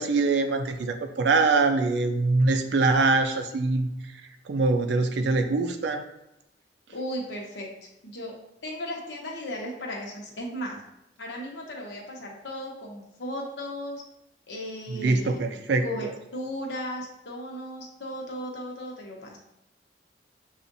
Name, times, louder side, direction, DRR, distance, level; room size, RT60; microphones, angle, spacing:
voice 1, 0.0-3.9 4.5-6.0 14.9-15.8, right 3 dB, 75° right, 7 dB, 0.4 m, -23 dB
voice 2, 6.9-8.3 8.6-10.8 11.2-14.0 14.5-15.4 15.8-19.4, equal, 80° left, -1 dB, 0.9 m, -36 dB
6.9 x 2.4 x 2.6 m, 0.88 s
head